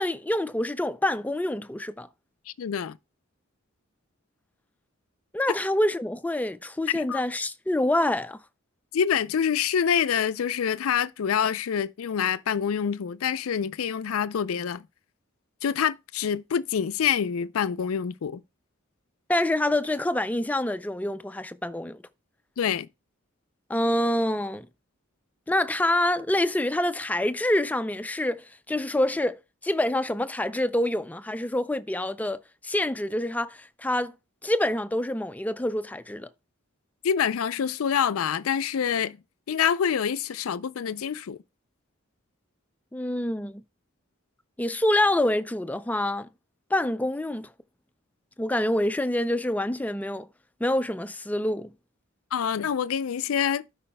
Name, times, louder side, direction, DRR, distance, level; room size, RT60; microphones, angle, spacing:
voice 1, 0.0-2.1 5.3-8.4 19.3-22.0 23.7-24.7 25.5-34.1 34.4-36.3 42.9-43.6 44.6-46.3 46.7-47.5 48.4-50.3 50.6-51.7, left 1 dB, 5° left, 0.4 m, -26 dB
voice 2, 2.6-3.0 6.9-7.2 8.9-14.9 15.6-18.4 22.6-22.9 37.0-39.2 39.5-41.4 52.3-53.6, left 7 dB, 85° left, 0.4 m, -26 dB
12.5 x 5.5 x 2.2 m
head